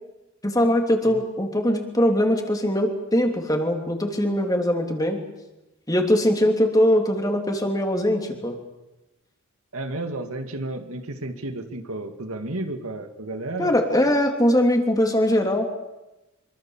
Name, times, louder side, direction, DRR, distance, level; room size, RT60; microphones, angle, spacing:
voice 1, 0.4-5.2 5.9-8.6 13.6-15.7, left 1 dB, 15° left, 3 dB, 3.2 m, -21 dB
voice 2, 9.7-13.7, right 2 dB, 80° right, 7 dB, 2.2 m, -32 dB
25.5 x 24.5 x 7.4 m, 1.0 s
head